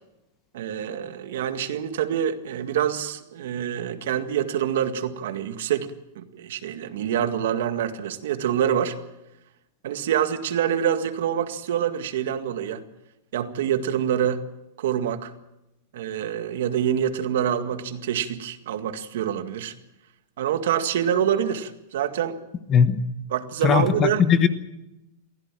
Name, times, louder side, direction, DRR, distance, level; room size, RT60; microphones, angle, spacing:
voice 1, 0.5-9.0 9.8-12.8 13.3-14.4 14.8-15.3 15.9-19.7 20.4-22.4 23.3-24.2, right 9 dB, 70° right, 8 dB, 1.9 m, -26 dB
voice 2, 22.7-23.0 23.6-24.5, left 7 dB, 20° left, 12 dB, 1.1 m, -19 dB
23.5 x 16.0 x 7.5 m, 0.94 s
supercardioid pair, 170°, 0 cm